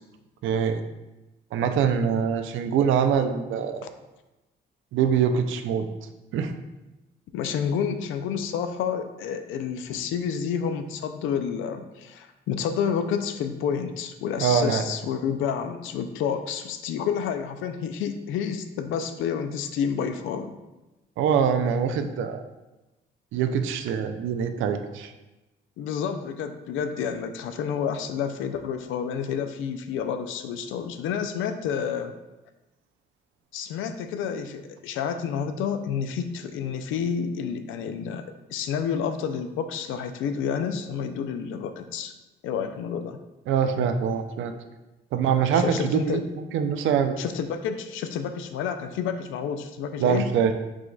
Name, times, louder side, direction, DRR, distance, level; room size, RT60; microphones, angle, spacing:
voice 1, 0.4-0.8 1.5-3.9 4.9-5.9 6.3-6.5 14.4-14.8 21.2-22.4 23.3-25.1 43.5-44.5 45.1-47.2 50.0-50.5, right 7 dB, 80° right, 8 dB, 0.4 m, -24 dB
voice 2, 7.3-20.6 25.8-32.1 33.5-38.3 38.5-42.1 42.4-43.2 45.5-46.2 47.2-50.3, left 7 dB, 85° left, 8 dB, 0.4 m, -29 dB
4.9 x 3.8 x 2.3 m, 1.0 s
cardioid pair, 90°, 20 cm